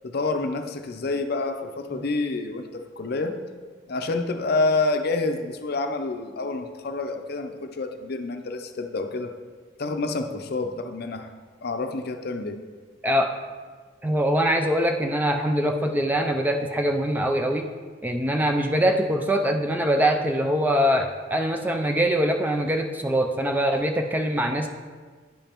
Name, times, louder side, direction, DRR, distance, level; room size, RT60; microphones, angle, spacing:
voice 1, 0.0-3.4 3.9-9.3 9.8-11.3 11.6-12.6, left 3 dB, 55° left, 6 dB, 0.5 m, -28 dB
voice 2, 14.0-17.7 18.0-24.7, equal, 10° right, 4 dB, 0.3 m, -23 dB
10.5 x 5.1 x 3.0 m, 1.5 s
head